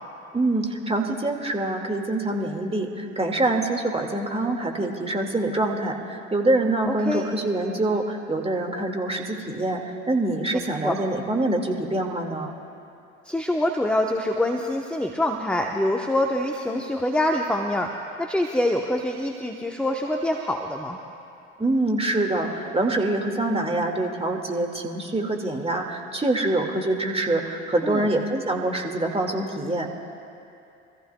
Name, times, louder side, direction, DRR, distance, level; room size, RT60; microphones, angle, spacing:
voice 1, 0.3-9.8 10.1-12.6 21.6-29.9, right 2 dB, 15° right, 2 dB, 2.1 m, -25 dB
voice 2, 6.9-7.2 10.8-10.9 13.2-17.9 18.2-21.0 27.8-28.1, left 1 dB, 5° left, 2 dB, 1.0 m, -25 dB
25.5 x 15.0 x 2.3 m, 2.6 s
hypercardioid pair, 60°, 37 cm